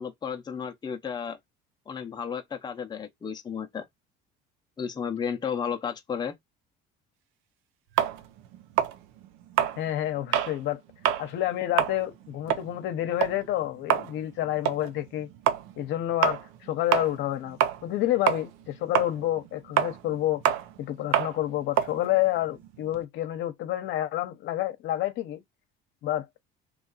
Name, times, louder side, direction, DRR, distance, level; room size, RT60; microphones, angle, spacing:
voice 1, 0.0-1.4 1.9-3.8 4.8-6.3, left 7 dB, 20° left, 0.7 m, -33 dB
sound 1, 8.0-10.6 10.9-11.3 11.6-18.0 18.3-23.0, right 11 dB, 80° right, 0.6 m, -27 dB
voice 2, 9.8-10.8 11.2-15.3 15.8-20.4 20.8-25.4 26.0-26.3, left 14 dB, 65° left, 0.9 m, -29 dB
3.1 x 2.6 x 4.0 m
cardioid pair, 115°, 21 cm